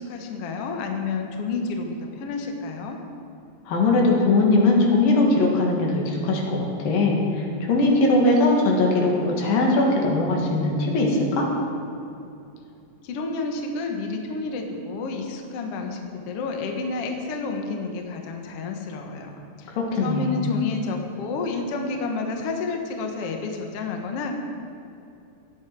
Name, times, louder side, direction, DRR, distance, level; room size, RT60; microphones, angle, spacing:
voice 1, 0.0-3.0 13.0-24.3, left 3 dB, 60° left, 3 dB, 1.7 m, -30 dB
voice 2, 3.7-11.5 19.8-20.4, left 2 dB, 80° left, -1 dB, 3.6 m, -20 dB
16.5 x 11.0 x 4.7 m, 2.7 s
omnidirectional pair, 4.0 m